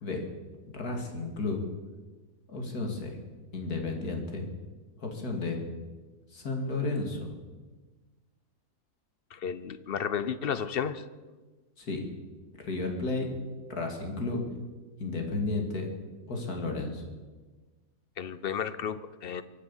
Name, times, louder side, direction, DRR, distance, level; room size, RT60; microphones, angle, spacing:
voice 1, 0.7-1.6 2.5-3.2 3.5-4.4 5.0-5.6 6.3-7.3 11.8-12.0 12.6-13.3 13.7-14.4 15.0-15.9 16.3-17.1, left 3 dB, 70° left, 2 dB, 2.9 m, -32 dB
voice 2, 9.3-11.1 18.2-19.4, left 7 dB, 50° left, 14 dB, 0.7 m, -32 dB
24.0 x 8.3 x 7.2 m, 1.3 s
omnidirectional pair, 1.7 m